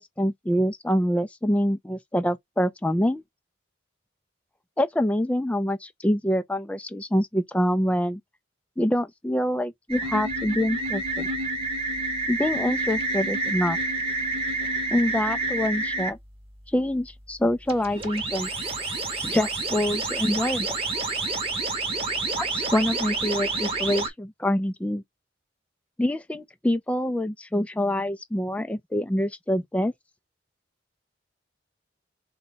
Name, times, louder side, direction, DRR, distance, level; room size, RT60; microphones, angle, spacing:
voice 1, 0.0-3.2 4.8-8.2 8.8-11.3 12.3-13.8 14.9-16.2 16.7-18.5 19.2-20.8 22.1-25.0 26.0-29.9, left 1 dB, 5° left, 0.3 m, -26 dB
sound 1, 9.9-16.1 17.7-24.1, right 2 dB, 30° right, 0.9 m, -28 dB
4.0 x 2.2 x 3.9 m
head